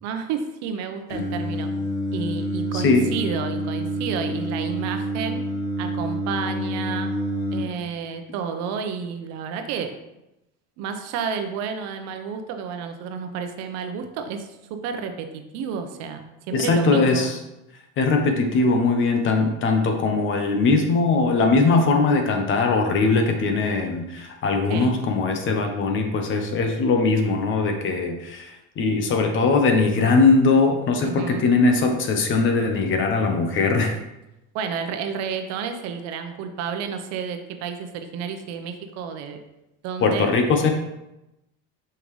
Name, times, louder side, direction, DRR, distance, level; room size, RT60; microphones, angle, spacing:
voice 1, 0.0-1.7 2.1-5.4 5.8-7.1 7.5-9.9 10.8-17.3 24.7-24.9 31.0-31.5 34.5-39.4 39.8-40.3, right 6 dB, 65° right, 6 dB, 0.8 m, -31 dB
Singing, 1.1-7.6, equal, 90° left, 2.0 m, -28 dB
voice 2, 2.7-3.1 16.5-17.3 18.0-28.5 28.8-34.0 40.0-40.7, left 3 dB, 45° left, 4 dB, 1.0 m, -20 dB
5.7 x 5.2 x 3.2 m, 0.91 s
cardioid pair, 125°, 29 cm